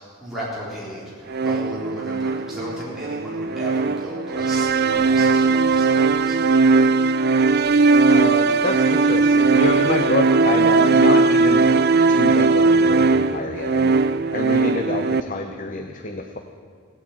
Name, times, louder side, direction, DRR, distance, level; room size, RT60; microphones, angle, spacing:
voice 1, 0.2-6.4, right 1 dB, ahead, -8 dB, 3.7 m, -34 dB
sound 1, 1.3-15.2, right 4 dB, 45° right, 0.5 m, -18 dB
voice 2, 8.1-11.7 12.1-13.9 14.3-16.4, left 2 dB, 35° left, 4 dB, 0.8 m, -27 dB
17.0 x 8.6 x 8.9 m, 2.1 s
head